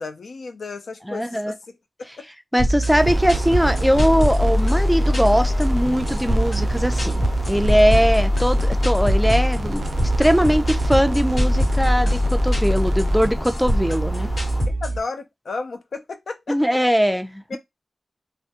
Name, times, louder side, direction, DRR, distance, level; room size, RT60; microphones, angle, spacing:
voice 1, 0.0-1.6 2.0-2.2 14.7-16.8 17.5-17.6, left 3 dB, 85° left, 0.4 m, -33 dB
voice 2, 1.1-1.5 2.5-7.2 7.5-9.8 10.2-14.3 16.5-17.6, equal, ahead, 0.3 m, -20 dB
sound 1, 2.6-15.0, equal, 70° left, 1.2 m, -22 dB
sound 2, 2.9-14.7, equal, 20° left, 0.9 m, -31 dB
sound 3, 3.0-13.3, right 2 dB, 80° right, 0.3 m, -30 dB
2.2 x 2.1 x 2.8 m
wide cardioid pair, 70°, 0 cm